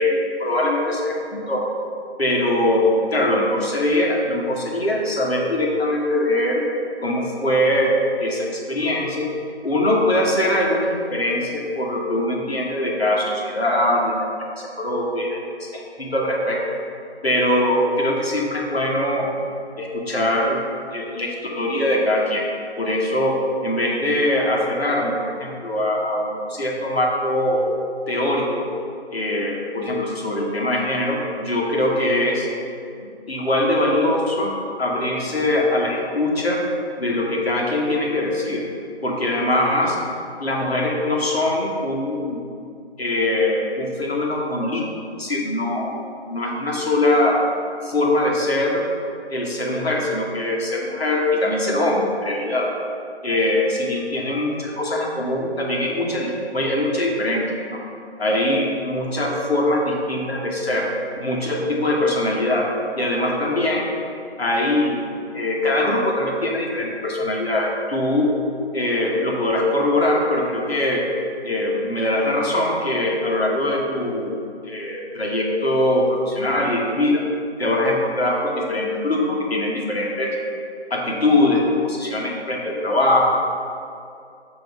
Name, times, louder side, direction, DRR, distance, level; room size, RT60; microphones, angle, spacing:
voice 1, 0.0-1.6 2.2-6.6 7.0-7.9 8.2-9.3 9.6-14.1 14.6-16.6 17.2-19.3 19.8-20.6 20.9-22.4 22.8-27.6 28.1-28.6 29.1-32.5 33.3-34.5 34.8-36.6 37.0-38.6 39.0-40.0 40.4-42.4 43.0-44.8 45.1-45.9 46.3-47.4 47.8-48.8 49.3-52.7 53.2-57.8 58.2-60.9 61.2-62.7 63.0-63.9 64.4-65.0 65.3-68.3 68.7-71.1 71.4-74.4 74.6-77.2 77.6-80.3 80.9-83.4, left 1 dB, 65° left, -2 dB, 1.2 m, -22 dB
7.2 x 3.0 x 4.6 m, 2.4 s
figure-of-eight pair, 180°, 33 cm